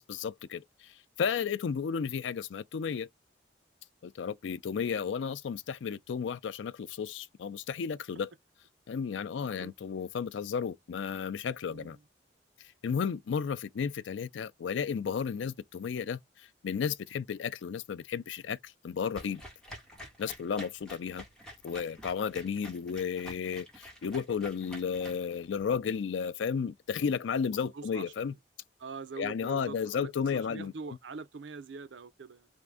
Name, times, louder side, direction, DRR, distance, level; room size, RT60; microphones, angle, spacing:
voice 1, 0.0-3.1 4.0-8.3 8.9-12.0 12.8-16.2 16.6-19.4 20.2-21.2 21.6-28.3 29.2-30.7, left 6 dB, 85° left, 0.4 m, -33 dB
voice 2, 9.3-9.7 11.7-11.9 27.7-28.3 28.8-32.5, right 4 dB, 85° right, 0.5 m, -44 dB
sound 1, 19.2-25.6, equal, 5° left, 1.4 m, -48 dB
3.6 x 2.5 x 3.4 m
head